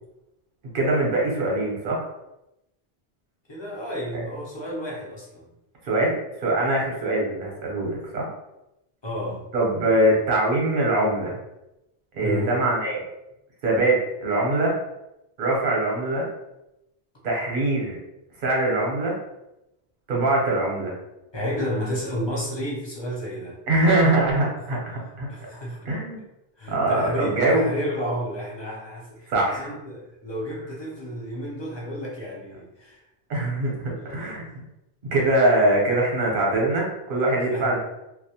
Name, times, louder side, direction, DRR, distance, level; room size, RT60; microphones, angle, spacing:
voice 1, 0.7-2.0 5.8-8.3 9.5-11.4 12.1-13.0 13.6-14.8 15.4-16.3 17.2-18.0 18.4-19.2 20.1-21.0 23.7-25.3 25.9-26.2 26.7-27.6 29.3-29.7 33.3-34.6 35.0-37.8, right 2 dB, 60° right, -2 dB, 0.9 m, -23 dB
voice 2, 3.5-5.5 9.0-9.4 10.0-10.2 12.2-12.6 21.3-23.6 25.3-25.9 26.6-33.0 33.9-34.4 37.4-37.8, equal, 35° left, -5 dB, 0.5 m, -31 dB
2.3 x 2.0 x 2.7 m, 0.91 s
omnidirectional pair, 1.1 m